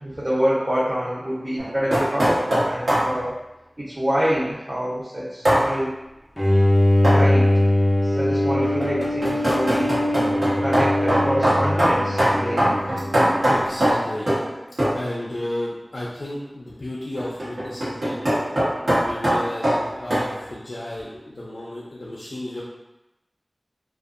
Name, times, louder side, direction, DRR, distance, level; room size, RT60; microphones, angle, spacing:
voice 1, 0.0-3.3 3.8-5.9 7.1-7.5 8.0-9.9 10.6-12.6, equal, 35° right, -9 dB, 0.6 m, -26 dB
sound 1, 1.6-3.1 5.4-5.7 7.0-7.3 8.6-14.5 14.8-15.1 17.2-20.3, equal, 85° right, 0.9 m, -21 dB
voice 2, 5.4-5.7 11.4-11.5 13.5-14.3 14.9-18.1 18.8-22.6, left 1 dB, 75° left, -6 dB, 0.4 m, -33 dB
Bowed string instrument, 6.4-13.6, left 1 dB, 15° left, 0.4 m, -21 dB
2.6 x 2.3 x 2.4 m, 0.96 s
wide cardioid pair, 60°, 0 cm